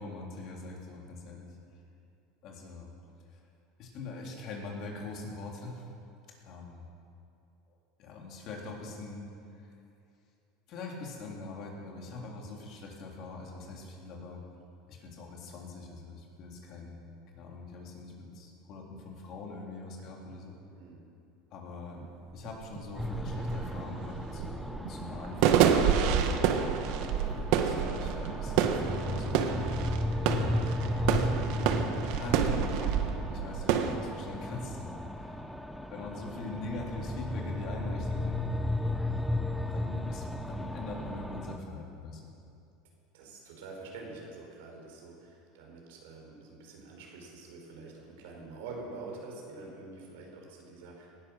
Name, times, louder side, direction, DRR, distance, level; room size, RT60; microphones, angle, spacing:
voice 1, 0.0-1.5 2.4-2.9 3.3-3.4 3.8-5.8 6.4-6.8 8.0-9.3 9.6-9.7 10.7-14.4 14.9-17.0 17.3-20.6 21.5-22.0 22.3-26.5 27.6-29.9 30.9-35.4 35.9-38.4 39.7-42.2, left 3 dB, 50° left, -1 dB, 3.6 m, -43 dB
sound 1, 22.0-22.1 22.4-33.9, right 8 dB, 65° right, 1.3 m, -28 dB
sound 2, 22.9-41.6, left 1 dB, ahead, 0.9 m, -35 dB
voice 2, 43.1-51.2, right 3 dB, 80° right, 0 dB, 4.9 m, -46 dB
18.0 x 12.0 x 6.5 m, 2.6 s
supercardioid pair, 120°, 0 cm